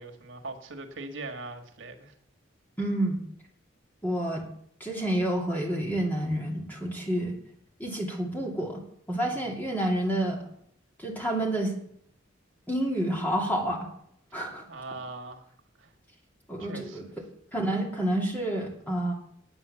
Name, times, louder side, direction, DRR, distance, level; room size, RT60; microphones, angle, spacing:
voice 1, 0.0-2.1 9.3-9.6 14.7-15.4 15.8-15.9 16.6-17.1, right 3 dB, 90° right, 4 dB, 1.6 m, -41 dB
voice 2, 2.8-3.2 4.0-4.5 4.8-7.4 7.8-8.8 9.1-10.4 11.0-11.8 12.7-13.9 14.3-14.6 16.5-17.0 17.5-19.1, right 1 dB, 10° left, -1 dB, 2.5 m, -29 dB
9.8 x 8.7 x 6.9 m, 0.68 s
head